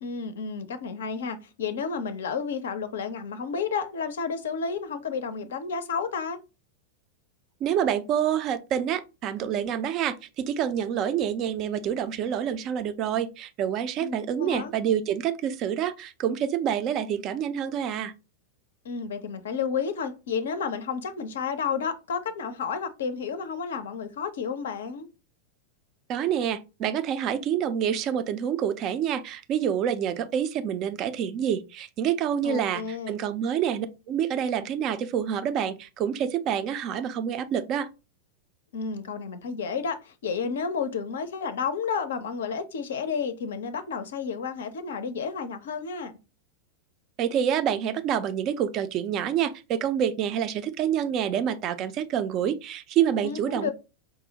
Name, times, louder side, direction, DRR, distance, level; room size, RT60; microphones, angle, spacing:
voice 1, 0.0-6.4 14.0-14.7 18.8-25.1 32.4-33.2 38.7-46.1 53.2-53.7, left 6 dB, 60° left, 0.4 m, -31 dB
voice 2, 7.6-18.1 26.1-37.9 47.2-53.7, right 9 dB, 35° right, 0.4 m, -27 dB
4.6 x 2.0 x 2.7 m
figure-of-eight pair, 90°, 0 cm